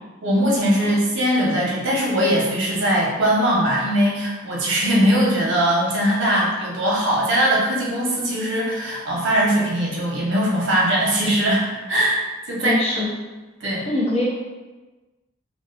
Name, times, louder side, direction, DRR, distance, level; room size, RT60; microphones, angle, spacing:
voice 1, 0.2-12.2 12.5-13.0 13.6-13.9, equal, 60° right, -4 dB, 0.7 m, -20 dB
voice 2, 12.6-13.1 13.9-14.3, left 1 dB, 30° left, -5 dB, 0.5 m, -23 dB
2.3 x 2.3 x 2.4 m, 1.2 s
head